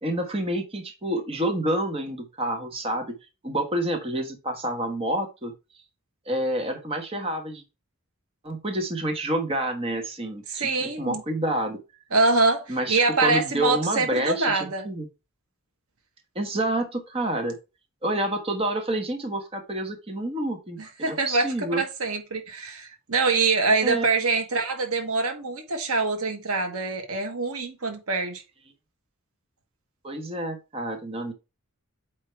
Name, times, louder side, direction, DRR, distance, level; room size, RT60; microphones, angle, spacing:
voice 1, 0.0-3.2 3.4-5.5 6.2-7.6 8.4-11.8 12.7-15.1 16.3-17.6 18.0-21.8 23.8-24.1 30.0-31.3, right 1 dB, 25° right, 1.4 m, -28 dB
voice 2, 10.5-11.2 12.1-14.9 20.8-28.4, right 3 dB, 90° right, 1.6 m, -25 dB
8.3 x 3.1 x 4.5 m
head